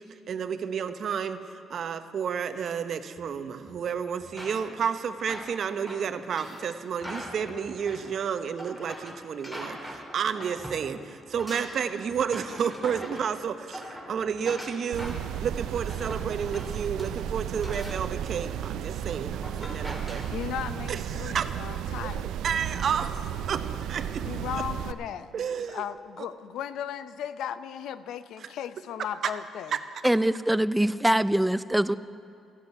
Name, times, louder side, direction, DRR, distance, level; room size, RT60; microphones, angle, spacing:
voice 1, 0.0-1.4 1.7-20.3 20.9-21.5 22.0-23.2 23.5-24.2 25.3-25.8 26.2-26.3 29.7-29.8, right 7 dB, 60° right, 10 dB, 0.8 m, -31 dB
sound 1, 3.2-3.3 3.7-3.9 4.2-4.6 7.0-8.4 8.8-8.9 10.6-14.2 14.5-14.6, equal, 65° left, 2.5 m, -56 dB
sound 2, 4.3-10.9 11.2-20.3, equal, 15° left, 2.6 m, -42 dB
sound 3, 14.9-24.9, right 10 dB, 85° right, 0.4 m, -34 dB
voice 2, 20.3-22.3 24.2-29.8, left 9 dB, 80° left, 14 dB, 0.5 m, -36 dB
voice 3, 30.0-32.0, right 1 dB, 5° right, 15 dB, 0.4 m, -23 dB
14.0 x 7.9 x 9.4 m, 2.7 s
cardioid pair, 90°, 0 cm